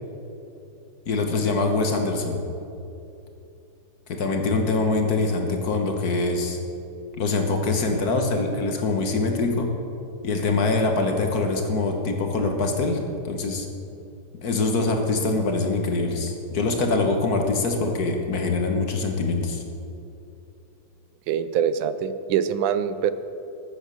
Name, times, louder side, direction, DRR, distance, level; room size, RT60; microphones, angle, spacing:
voice 1, 1.1-2.4 4.1-6.6 7.2-9.7 10.2-13.7 14.4-19.6, left 3 dB, 55° left, 4 dB, 1.6 m, -24 dB
voice 2, 21.3-23.1, right 8 dB, 85° right, 13 dB, 1.4 m, -24 dB
14.0 x 9.0 x 6.3 m, 2.7 s
omnidirectional pair, 2.1 m